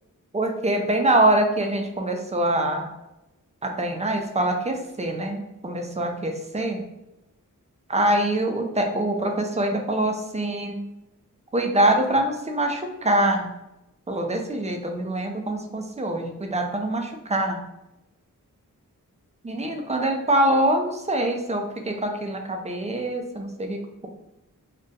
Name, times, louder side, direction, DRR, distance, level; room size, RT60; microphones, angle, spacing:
voice 1, 0.3-2.9 3.6-6.8 7.9-10.8 11.5-13.5 14.1-17.6 19.4-24.1, right 1 dB, 20° right, 3 dB, 0.5 m, -24 dB
2.6 x 2.2 x 3.8 m, 0.93 s
cardioid pair, 55°, 33 cm